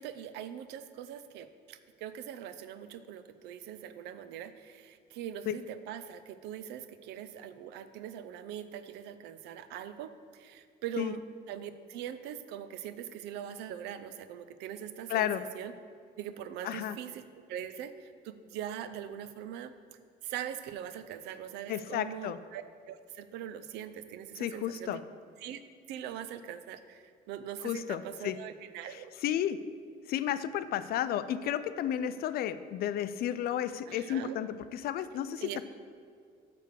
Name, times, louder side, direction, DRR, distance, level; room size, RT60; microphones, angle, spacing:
voice 1, 0.0-11.2 11.5-15.7 16.2-19.7 20.2-25.0 25.4-25.6 25.9-29.1 33.9-34.4 35.4-35.6, right 10 dB, 90° right, 11 dB, 0.5 m, -42 dB
voice 2, 15.1-15.4 16.6-17.0 21.7-22.4 24.4-25.0 27.6-28.3 28.9-29.6 30.1-35.6, left 10 dB, 65° left, 13 dB, 0.4 m, -32 dB
9.2 x 3.4 x 6.7 m, 2.2 s
cardioid pair, 110°, 17 cm